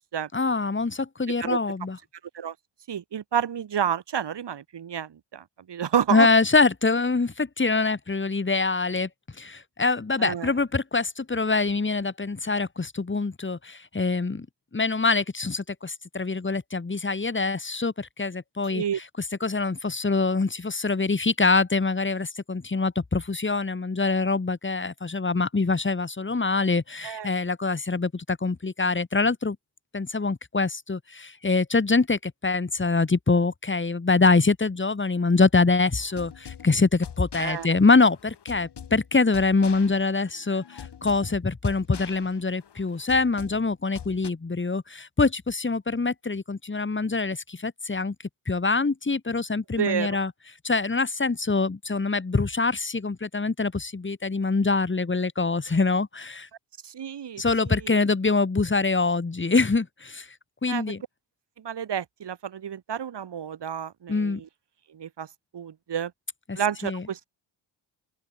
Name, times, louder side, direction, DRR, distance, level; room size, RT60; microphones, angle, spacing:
voice 1, 0.3-2.0 6.1-9.1 9.4-14.5 14.7-18.8 19.4-29.6 29.9-48.1 48.5-50.3 50.6-56.5 57.4-60.3 60.6-61.0 64.1-64.4 66.5-67.0, left 3 dB, 25° left, 3.2 m, -24 dB
voice 2, 2.9-6.3 10.2-10.5 18.7-19.0 27.0-27.3 37.4-37.7 49.8-50.2 56.8-58.0 60.7-60.9 61.6-64.5 64.9-65.3 65.5-66.1 66.6-67.2, right 8 dB, 60° right, 5.5 m, -30 dB
sound 1, 36.0-44.3, left 8 dB, 60° left, 5.2 m, -44 dB
open air
supercardioid pair, 55°, 47 cm